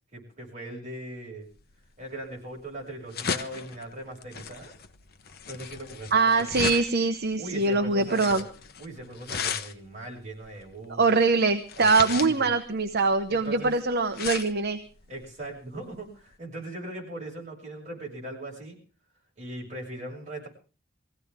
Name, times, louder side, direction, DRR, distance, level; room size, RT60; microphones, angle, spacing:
voice 1, 0.1-1.5 2.0-4.7 5.5-6.5 7.4-8.5 8.8-11.0 11.8-12.5 13.3-13.7 15.1-18.8 19.4-20.5, right 1 dB, 40° right, -2 dB, 6.7 m, -39 dB
sound 1, 1.6-16.4, left 6 dB, 55° left, 1.0 m, -37 dB
voice 2, 6.1-8.4 11.0-14.8, right 3 dB, 55° right, 7 dB, 1.0 m, -23 dB
21.5 x 16.0 x 3.7 m, 0.37 s
head